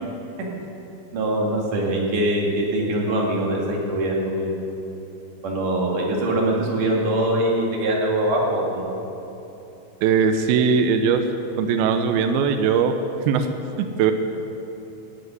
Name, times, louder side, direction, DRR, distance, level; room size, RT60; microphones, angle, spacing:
voice 1, 1.1-4.5 5.4-8.9, right 1 dB, 50° right, -2 dB, 3.5 m, -23 dB
voice 2, 10.0-11.3 11.6-12.9 13.3-13.5 13.8-14.1, right 6 dB, 90° right, 7 dB, 2.1 m, -20 dB
14.5 x 9.6 x 9.6 m, 3.0 s
omnidirectional pair, 5.4 m